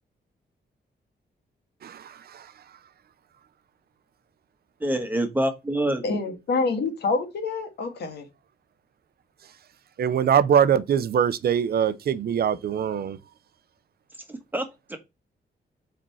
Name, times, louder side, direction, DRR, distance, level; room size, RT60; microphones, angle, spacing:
voice 1, 1.8-2.5 10.0-13.2, right 8 dB, 65° right, 0.6 m, -23 dB
voice 2, 4.8-6.0 14.3-15.0, right 1 dB, 10° right, 1.3 m, -26 dB
voice 3, 6.0-8.3, left 3 dB, 75° left, 1.8 m, -27 dB
5.1 x 4.4 x 5.5 m
wide cardioid pair, 155°, 17 cm